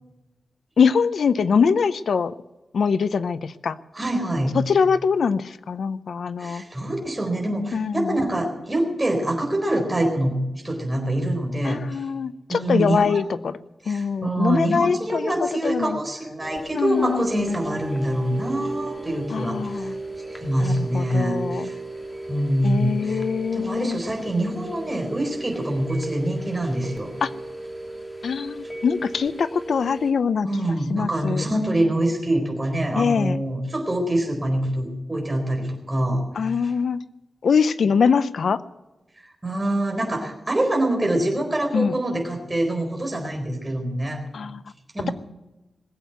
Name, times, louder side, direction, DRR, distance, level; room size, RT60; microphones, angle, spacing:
voice 1, 0.8-2.3 2.7-3.8 4.6-6.6 7.7-8.2 11.6-13.6 13.9-15.3 15.6-16.0 16.7-17.3 19.3-20.0 20.6-21.7 22.6-24.0 27.2-27.3 28.2-30.5 30.9-31.4 33.0-33.4 36.4-37.0 37.4-38.6 41.7-42.0 44.3-44.6, left 6 dB, 75° left, 14 dB, 0.6 m, -23 dB
voice 2, 3.9-4.6 6.4-12.0 12.5-13.2 13.8-19.9 20.3-21.8 22.3-23.2 23.5-27.1 30.4-36.5 39.4-44.2 44.9-45.1, right 1 dB, 15° right, 1 dB, 4.1 m, -25 dB
sound 1, 16.4-30.1, right 2 dB, 15° left, 2.6 m, -35 dB
20.5 x 8.3 x 8.0 m, 1.0 s
wide cardioid pair, 155°, 0 cm